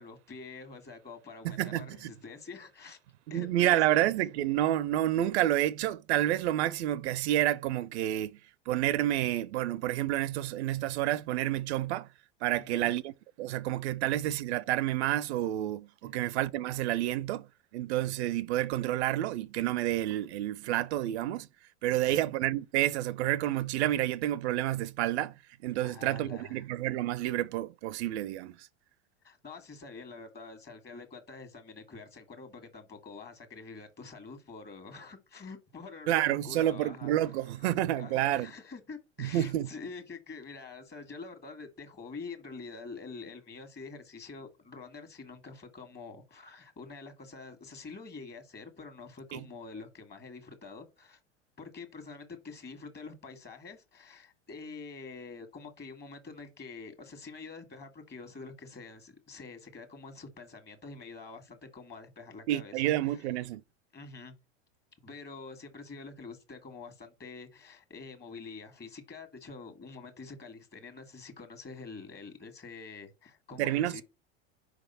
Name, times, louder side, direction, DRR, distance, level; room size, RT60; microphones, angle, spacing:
voice 1, 0.0-3.0 3.3-4.1 12.6-12.9 16.0-16.3 21.9-22.3 25.8-26.6 29.2-37.3 37.9-51.2 51.6-63.3 63.9-64.3 65.0-74.0, left 4 dB, 30° left, 1.6 m, -46 dB
voice 2, 1.4-2.1 3.3-8.4 8.7-12.1 12.4-13.1 13.4-17.5 17.7-21.5 21.8-25.3 25.6-28.6 36.1-38.5 39.2-39.7 49.3-49.4 62.5-63.6 73.6-74.0, right 13 dB, 70° right, 0.5 m, -29 dB
5.0 x 3.5 x 5.5 m
hypercardioid pair, 95°, 34 cm